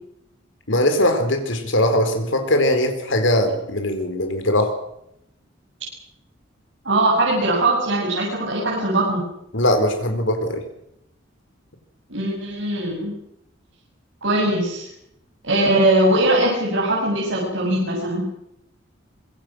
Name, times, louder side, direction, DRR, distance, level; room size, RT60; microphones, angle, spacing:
voice 1, 0.7-4.7 9.5-10.6, left 1 dB, 70° left, 7 dB, 4.5 m, -20 dB
voice 2, 6.8-9.2 12.1-13.1 14.2-14.9 15.4-18.2, right 1 dB, 70° right, -4 dB, 7.4 m, -20 dB
26.0 x 22.0 x 6.4 m, 0.78 s
head